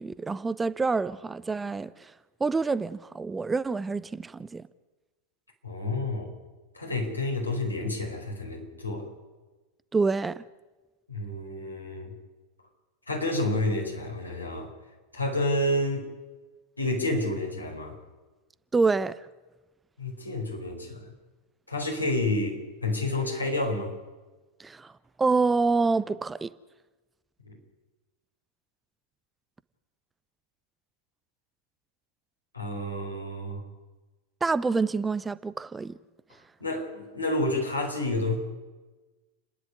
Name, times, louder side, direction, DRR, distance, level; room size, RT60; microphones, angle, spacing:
voice 1, 0.0-2.1 2.4-4.6 9.9-10.4 18.7-19.3 24.6-24.9 25.2-26.5 34.4-36.0, right 4 dB, 10° right, 0.6 m, -27 dB
voice 2, 5.6-6.3 6.7-9.1 11.1-12.1 13.1-14.7 15.1-16.1 16.8-18.0 20.0-21.1 21.7-23.9 27.4-27.6 32.5-33.6 36.6-38.4, left 1 dB, 80° left, 4.6 m, -29 dB
30.0 x 10.5 x 9.6 m
figure-of-eight pair, 90°, 0 cm